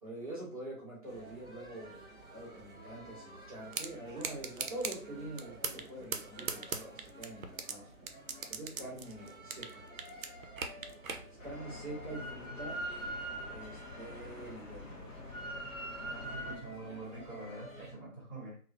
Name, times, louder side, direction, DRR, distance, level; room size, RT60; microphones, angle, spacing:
voice 1, 0.0-2.0 2.3-7.9 8.5-9.9 11.4-12.8 13.5-15.2, right 1 dB, 25° right, -5 dB, 0.8 m, -45 dB
sound 1, 1.0-17.9, right 1 dB, 5° right, 1.1 m, -52 dB
sound 2, 3.7-3.9 4.2-5.0 5.4-5.9 6.1-7.7 8.1-9.7 10.0-11.2, right 5 dB, 65° right, 0.5 m, -37 dB
Drill, 11.4-16.6, equal, 55° left, 0.9 m, -42 dB
voice 2, 16.0-18.6, right 2 dB, 20° left, -12 dB, 0.7 m, -45 dB
2.6 x 2.4 x 2.3 m, 0.43 s
figure-of-eight pair, 150°, 45 cm